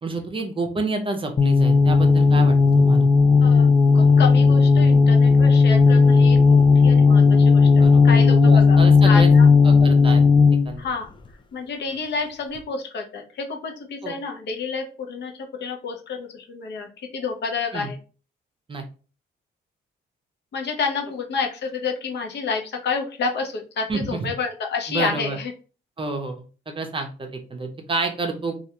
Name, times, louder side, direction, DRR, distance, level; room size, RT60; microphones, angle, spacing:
voice 1, 0.0-3.1 7.8-9.3 9.6-10.2 10.7-10.9 14.0-14.1 17.7-17.9 18.7-18.8 23.9-24.2 24.9-25.4 26.0-28.6, right 3 dB, 25° right, 5 dB, 0.6 m, -29 dB
sound 1, 1.4-10.7, left 4 dB, 25° left, 0.4 m, -14 dB
voice 2, 3.4-9.5 10.8-11.1 11.5-18.0 20.5-25.5, left 5 dB, 60° left, 3 dB, 0.7 m, -29 dB
2.4 x 2.2 x 2.8 m, 0.36 s
cardioid pair, 90°, 20 cm